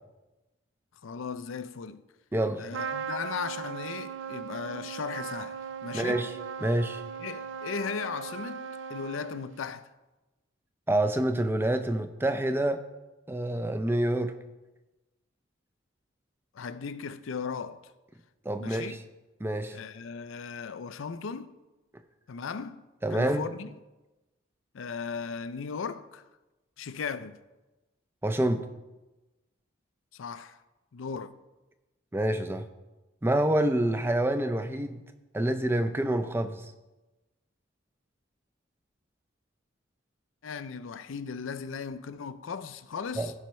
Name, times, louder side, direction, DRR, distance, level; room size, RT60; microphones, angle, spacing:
voice 1, 1.0-2.0 2.6-6.3 7.2-9.9 16.5-17.8 18.6-19.0 19.7-21.5 22.3-22.8 23.1-23.7 24.7-26.3 26.8-27.4 30.1-30.6 30.9-31.3 40.4-43.3, left 5 dB, 85° left, 0.5 m, -37 dB
voice 2, 2.3-2.6 5.9-6.3 6.6-7.0 10.9-12.8 13.3-14.3 18.4-19.0 19.4-19.8 23.0-23.4 28.2-28.6 32.1-32.7 33.2-35.0 35.3-36.7 43.2-43.3, right 1 dB, 10° right, 0.5 m, -27 dB
Trumpet, 2.7-9.6, right 7 dB, 70° right, 0.4 m, -38 dB
16.0 x 5.6 x 3.1 m
head